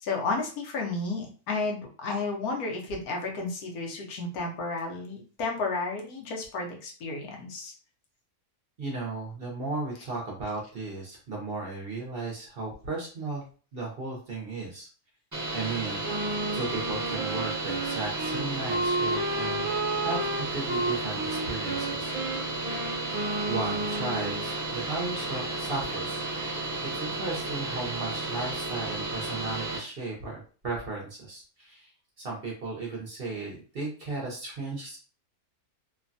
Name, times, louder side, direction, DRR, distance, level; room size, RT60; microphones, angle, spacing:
voice 1, 0.0-7.7, left 3 dB, 80° left, 1 dB, 1.2 m, -32 dB
voice 2, 8.8-13.4 13.7-14.9 15.5-16.0 16.5-19.7 20.0-22.6 23.4-26.6 26.9-31.9 32.2-35.0, right 3 dB, 50° right, -1 dB, 0.8 m, -35 dB
sound 1, 15.3-29.8, right 2 dB, 20° right, 0.5 m, -33 dB
Wind instrument woodwind instrument, 16.0-24.5, right 2 dB, 85° right, 0.3 m, -32 dB
3.1 x 2.2 x 2.5 m, 0.37 s
omnidirectional pair, 1.6 m